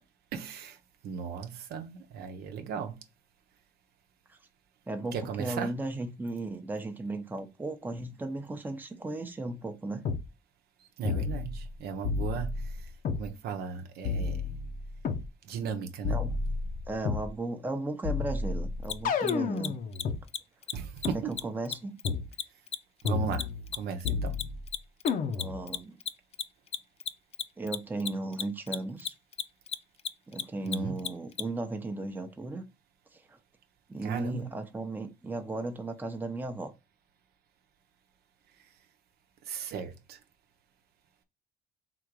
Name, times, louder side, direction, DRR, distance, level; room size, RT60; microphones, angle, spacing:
voice 1, 0.3-0.8 1.0-3.0 5.1-5.7 11.0-12.5 13.2-14.4 15.5-16.2 20.7-21.3 23.0-23.5 23.7-24.3 30.7-30.9 34.0-34.4 39.5-40.2, right 7 dB, 70° right, 0.8 m, -36 dB
voice 2, 4.9-10.1 16.1-16.4 16.9-19.7 21.1-22.0 25.4-26.0 27.6-29.1 30.3-32.7 33.1-33.4 33.9-36.7, right 2 dB, 10° right, 0.7 m, -36 dB
sound 1, 10.0-10.2 11.0-11.7 12.0-13.2 14.0-15.3 16.0-17.3 18.0-20.2 21.0-21.1 22.0-22.3 23.0-23.7 24.0-24.7 25.0-25.7, left 4 dB, 55° left, 0.8 m, -31 dB
Mechanisms, 18.8-18.9 19.2-19.3 19.6-19.7 19.9-20.0 20.3-20.4 20.6-20.7 21.0-21.1 21.4-24.1 24.3-31.4, left 8 dB, 40° left, 0.4 m, -34 dB
3.8 x 2.5 x 4.7 m
cardioid pair, 110°, 17 cm